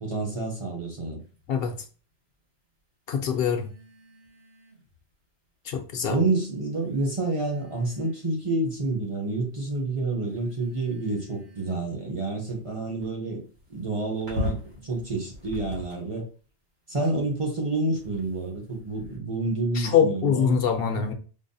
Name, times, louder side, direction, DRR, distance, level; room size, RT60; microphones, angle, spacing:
voice 1, 0.0-1.2 6.0-13.4 13.7-16.3 16.9-21.0, right 2 dB, 35° right, 0.7 m, -29 dB
sound 1, 1.2-1.5 3.2-5.0 6.0-6.1 6.7-8.5 9.0-9.5 10.2-16.3 17.0-19.2, left 2 dB, 70° right, 1.7 m, -41 dB
voice 2, 3.1-3.7 5.7-6.2 19.7-21.1, left 8 dB, 65° left, 0.8 m, -24 dB
5.2 x 2.1 x 2.6 m
omnidirectional pair, 1.1 m